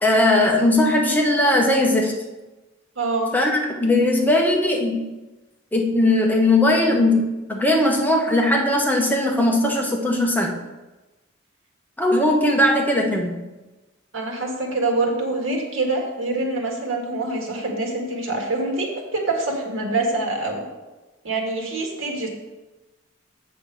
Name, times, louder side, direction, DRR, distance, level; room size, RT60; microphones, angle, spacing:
voice 1, 0.0-2.2 3.3-5.1 5.7-10.5 12.0-13.4, left 1 dB, 10° left, 0 dB, 0.9 m, -19 dB
voice 2, 3.0-3.3 14.1-20.7 21.2-22.3, right 2 dB, 75° right, 1 dB, 1.8 m, -25 dB
7.4 x 6.9 x 4.7 m, 1.1 s
head